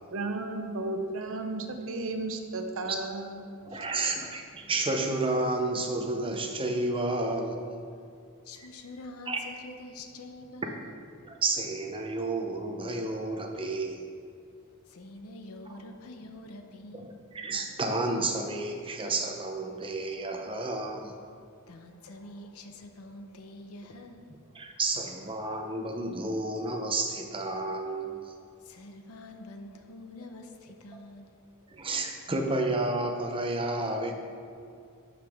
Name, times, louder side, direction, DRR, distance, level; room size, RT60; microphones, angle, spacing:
voice 1, 0.1-3.5, right 2 dB, 65° right, 6 dB, 0.7 m, -34 dB
voice 2, 3.7-7.6 9.3-9.4 11.3-14.0 16.9-17.1 17.3-21.1 24.6-28.2 31.7-34.1, right 2 dB, 25° right, 3 dB, 0.7 m, -31 dB
voice 3, 8.4-10.9 11.3-11.4 14.6-17.1 19.7-19.9 21.7-24.3 25.1-25.2 28.4-31.9, left 2 dB, 75° left, 5 dB, 0.7 m, -46 dB
12.0 x 4.9 x 3.5 m, 2.3 s
head